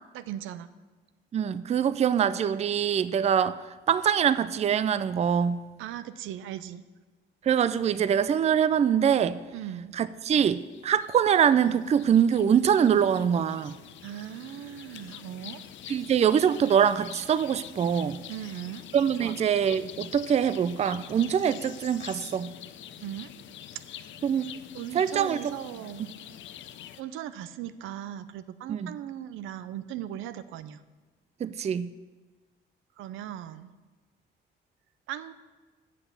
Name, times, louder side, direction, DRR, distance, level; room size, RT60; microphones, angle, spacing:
voice 1, 0.1-0.7 5.8-6.8 9.5-9.9 14.0-15.6 18.3-18.8 19.2-19.3 23.0-23.3 23.9-24.1 24.7-26.2 27.0-30.8 33.0-33.7 35.1-35.3, right 11 dB, 90° right, 0.5 m, -38 dB
voice 2, 1.3-5.6 7.4-9.4 9.9-13.8 15.9-18.2 18.9-22.5 24.2-24.5 24.9-25.5 28.7-28.9 31.4-31.9, right 8 dB, 35° right, 0.4 m, -24 dB
sound 1, 10.3-27.0, left 10 dB, 70° left, 0.5 m, -45 dB
8.1 x 5.9 x 7.9 m
cardioid pair, 90°, 20 cm